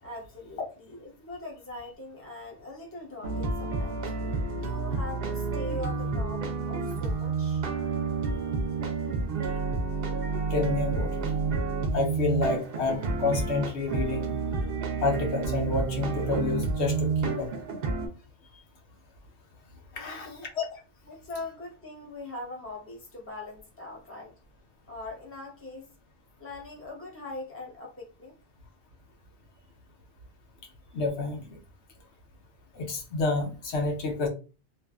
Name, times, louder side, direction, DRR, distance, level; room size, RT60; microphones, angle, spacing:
voice 1, 0.0-4.1 4.6-7.7 20.0-20.5 21.1-24.3 24.9-25.9 26.4-28.4, left 2 dB, 15° left, -2 dB, 0.8 m, -41 dB
sound 1, 3.2-18.1, right 4 dB, 65° right, 0.8 m, -30 dB
voice 2, 10.5-11.2 11.9-14.3 15.0-17.5 19.9-20.7 30.9-31.6 32.7-34.3, left 3 dB, 85° left, 2 dB, 1.0 m, -29 dB
2.5 x 2.4 x 2.3 m, 0.32 s
omnidirectional pair, 1.1 m